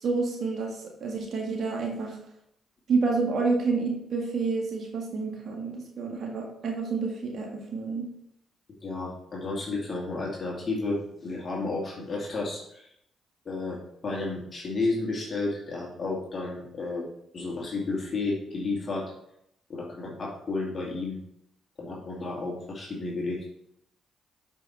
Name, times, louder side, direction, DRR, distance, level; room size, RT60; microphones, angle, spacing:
voice 1, 0.0-2.2 2.9-8.0, right 4 dB, 60° right, 0 dB, 1.6 m, -29 dB
voice 2, 8.8-12.9 13.4-17.1 17.3-19.1 19.7-21.2 21.8-23.5, left 3 dB, 45° left, -4 dB, 2.2 m, -32 dB
7.4 x 5.3 x 4.2 m, 0.75 s
supercardioid pair, 55°, 0 cm